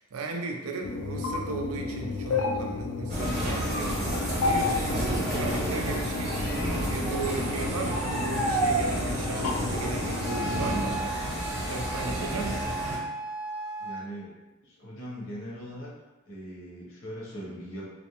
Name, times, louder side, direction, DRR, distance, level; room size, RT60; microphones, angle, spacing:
voice 1, 0.0-11.2 11.7-12.7, right 3 dB, 85° right, 2 dB, 0.4 m, -36 dB
sound 1, 0.8-10.9, left 4 dB, 80° left, 0.3 m, -32 dB
sound 2, 3.1-13.0, right 1 dB, 35° right, 0.8 m, -30 dB
Wind instrument woodwind instrument, 10.2-14.1, right 2 dB, 20° right, 0.3 m, -36 dB
voice 2, 13.8-14.3 14.6-15.9 16.3-17.9, equal, 65° left, -5 dB, 0.8 m, -40 dB
2.5 x 2.1 x 2.8 m, 1.1 s
head